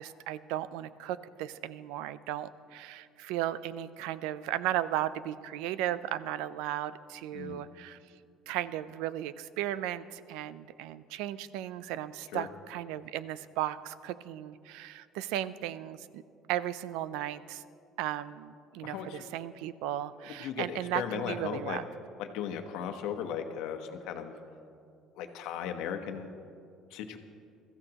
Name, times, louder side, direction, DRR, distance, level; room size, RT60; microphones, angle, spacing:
voice 1, 0.0-8.0 8.5-16.2 16.5-17.6 18.0-21.8, right 12 dB, 85° right, 16 dB, 0.5 m, -35 dB
voice 2, 18.8-19.4 20.2-21.8 22.2-24.3 25.2-26.3 26.9-27.2, left 8 dB, 70° left, 6 dB, 1.1 m, -37 dB
22.0 x 14.0 x 3.0 m, 2.4 s
cardioid pair, 155°, 0 cm